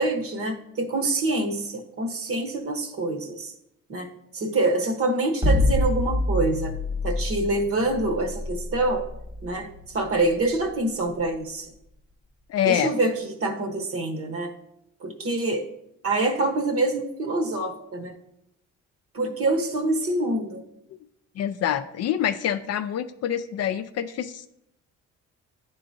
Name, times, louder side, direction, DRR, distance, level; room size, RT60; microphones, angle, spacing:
voice 1, 0.0-3.5 3.9-6.7 7.0-9.1 9.4-11.7 12.6-13.1 13.4-14.5 15.0-15.7 16.0-18.1 19.1-20.6, right 2 dB, 50° right, 4 dB, 1.0 m, -26 dB
sound 1, 5.4-11.6, left 1 dB, 15° right, 0.8 m, -26 dB
voice 2, 12.5-12.9 21.4-24.5, left 10 dB, 55° left, 10 dB, 0.4 m, -26 dB
10.0 x 3.8 x 2.6 m, 0.78 s
cardioid pair, 90°, 30 cm